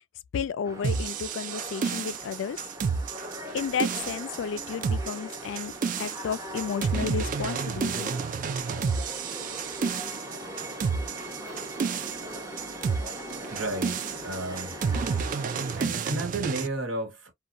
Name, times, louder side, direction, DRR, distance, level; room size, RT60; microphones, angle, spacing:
voice 1, 0.3-2.6 3.5-5.7 6.0-8.1, left 7 dB, 70° left, 0.3 m, -32 dB
sound 1, 0.6-15.9, right 1 dB, 15° right, 0.7 m, -40 dB
sound 2, 0.8-16.7, right 5 dB, 45° right, 0.3 m, -30 dB
voice 2, 13.5-14.9 15.7-17.3, right 2 dB, 85° right, 1.3 m, -33 dB
2.8 x 2.2 x 2.4 m
head